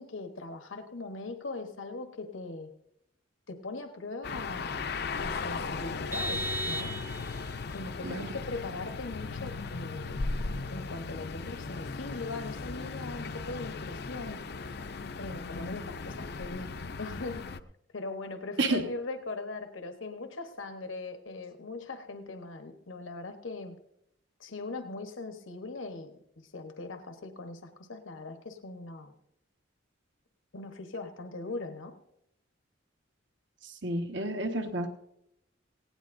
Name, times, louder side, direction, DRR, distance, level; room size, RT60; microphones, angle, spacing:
voice 1, 0.0-2.7 3.5-4.8 5.2-6.9 7.7-10.4 10.7-14.4 15.2-16.7 17.0-17.4 17.9-23.8 24.4-29.1 30.5-32.0, left 3 dB, 85° left, 6 dB, 1.1 m, -40 dB
sound 1, 4.2-17.6, left 4 dB, 55° left, 0.5 m, -37 dB
Vehicle horn car horn honking, 6.1-7.5, right 1 dB, 10° right, 0.5 m, -35 dB
voice 2, 8.0-8.4 18.6-18.8 33.6-34.9, right 2 dB, 70° right, 4 dB, 1.4 m, -31 dB
18.5 x 16.5 x 2.6 m, 0.78 s
head